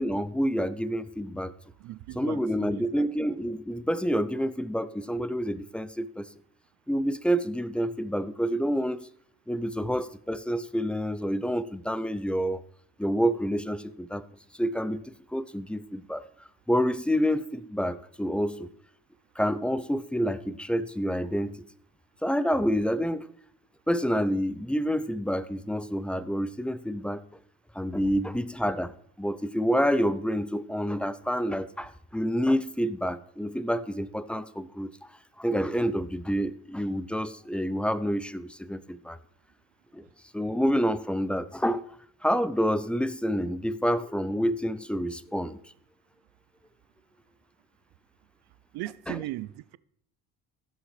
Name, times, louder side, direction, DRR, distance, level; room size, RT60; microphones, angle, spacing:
voice 1, 0.0-1.5 2.2-6.3 6.9-9.1 9.5-12.6 13.0-14.2 14.5-16.2 16.7-18.7 19.4-21.6 22.2-23.3 23.9-27.2 27.7-34.9 35.4-39.2 39.9-40.1 40.3-41.9 42.2-45.6 49.1-49.2, equal, 5° left, 0.4 m, -28 dB
voice 2, 1.8-3.0 48.7-49.8, right 17 dB, 75° right, 0.5 m, -38 dB
16.0 x 6.3 x 3.2 m
supercardioid pair, 65°, 39 cm